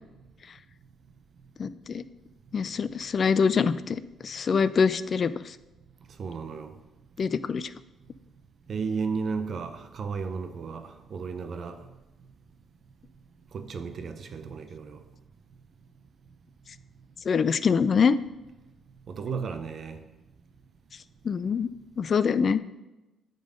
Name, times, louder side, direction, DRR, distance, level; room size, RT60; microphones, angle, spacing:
voice 1, 1.6-2.0 2.5-5.6 7.2-7.7 17.3-18.2 21.2-21.7 22.0-22.6, left 6 dB, 45° left, 15 dB, 0.3 m, -24 dB
voice 2, 6.2-6.7 8.7-11.8 13.5-15.0 19.1-20.0, right 5 dB, 55° right, 8 dB, 0.6 m, -34 dB
8.8 x 3.9 x 5.1 m, 1.0 s
cardioid pair, 90°, 0 cm